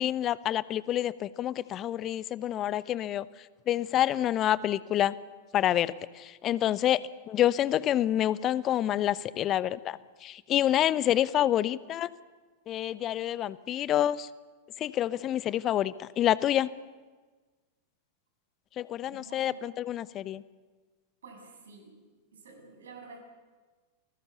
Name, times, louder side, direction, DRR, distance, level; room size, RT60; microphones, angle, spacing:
voice 1, 0.0-3.3 3.7-5.1 5.5-7.0 7.3-12.1 12.7-14.3 14.8-16.7 18.8-20.4, left 12 dB, 30° left, 18 dB, 0.9 m, -28 dB
voice 2, 19.0-19.7 21.2-21.9 22.3-23.2, right 4 dB, 65° right, 3 dB, 7.6 m, -50 dB
29.0 x 20.5 x 7.0 m, 1.3 s
figure-of-eight pair, 90°, 0 cm